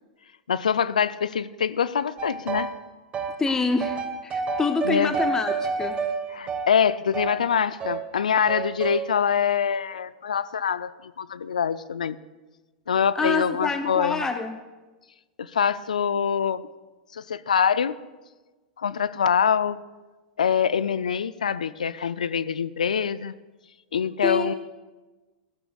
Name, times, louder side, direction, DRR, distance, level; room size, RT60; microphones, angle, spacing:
voice 1, 0.5-2.7 4.8-5.1 6.3-12.2 12.9-14.2 15.4-16.7 17.1-18.0 18.8-19.8 20.4-23.3 23.9-24.5, left 7 dB, 85° left, 16 dB, 0.4 m, -24 dB
sound 1, 2.2-2.8 3.1-7.4 7.8-8.0 8.5-9.0, right 4 dB, 25° right, 1.3 m, -29 dB
voice 2, 3.4-6.0 13.2-14.6 24.2-24.5, left 3 dB, 15° left, 8 dB, 0.6 m, -26 dB
14.0 x 12.5 x 2.4 m, 1.2 s
hypercardioid pair, 105°, 4 cm